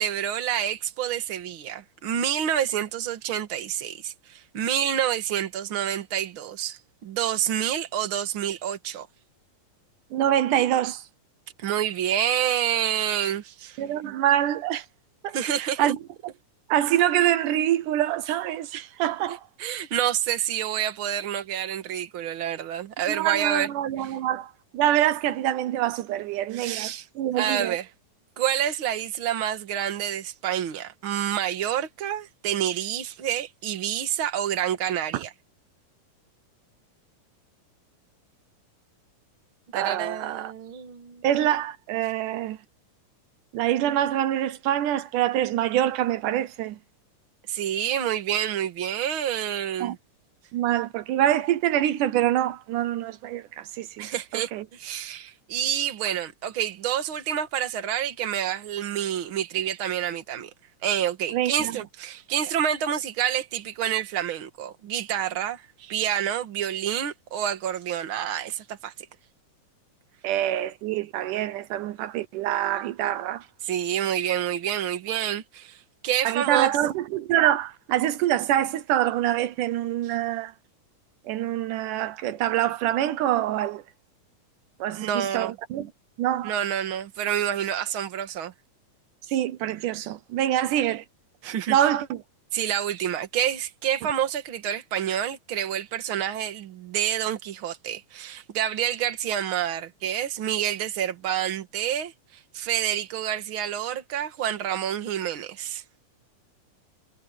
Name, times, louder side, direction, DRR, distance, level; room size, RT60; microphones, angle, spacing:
voice 1, 0.0-9.1 11.6-13.8 15.3-15.9 19.6-23.7 24.0-24.1 26.5-27.1 27.3-27.9 28.4-35.3 39.7-41.2 47.5-50.0 54.0-60.5 60.8-68.9 73.6-76.7 84.9-85.6 86.4-88.5 91.4-91.8 92.5-102.1 102.5-105.8, right 10 dB, 45° right, 2.2 m, -28 dB
voice 2, 10.1-11.0 13.8-14.9 15.2-16.0 16.7-19.4 23.1-27.8 35.1-35.2 39.7-40.5 41.2-42.6 43.5-46.8 49.8-49.9 50.5-54.1 54.3-54.6 61.3-61.7 70.2-73.4 76.2-80.5 81.3-83.8 84.8-85.9 86.2-86.6 89.3-91.0 91.7-92.2, right 12 dB, 85° right, 2.4 m, -25 dB
omnidirectional pair, 3.6 m